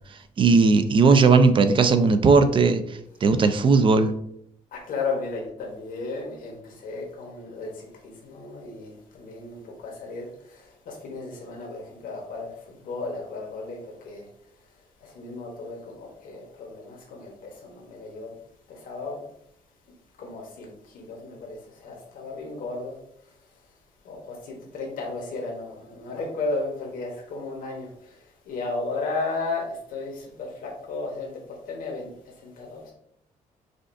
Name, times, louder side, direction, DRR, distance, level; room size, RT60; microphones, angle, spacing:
voice 1, 0.4-2.8 3.2-4.1, right 4 dB, 35° right, 10 dB, 0.4 m, -17 dB
voice 2, 4.7-14.3 15.0-18.3 18.7-19.2 20.2-23.0 24.0-28.2 28.5-31.4 31.7-32.9, left 3 dB, 80° left, 0 dB, 1.0 m, -34 dB
5.0 x 2.4 x 2.5 m, 0.73 s
cardioid pair, 100°, 14 cm